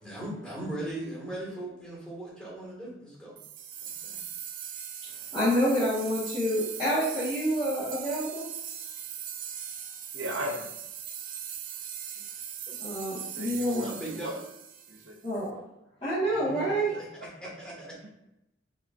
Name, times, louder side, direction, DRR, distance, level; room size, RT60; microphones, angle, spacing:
voice 1, 0.0-3.4 3.8-4.2 12.7-12.8 13.6-14.4 16.3-17.0 17.3-17.9, right 1 dB, 5° left, -6 dB, 1.6 m, -39 dB
sound 1, 3.4-15.4, right 8 dB, 45° right, 0.5 m, -40 dB
voice 2, 5.0-8.4 12.8-13.9 15.2-15.6 16.0-16.9, equal, 25° left, -13 dB, 1.4 m, -28 dB
voice 3, 10.1-10.7 13.3-14.3 14.9-15.2 16.7-16.8 18.0-18.1, equal, 75° right, 3 dB, 0.8 m, -36 dB
4.8 x 4.1 x 2.5 m, 0.89 s
head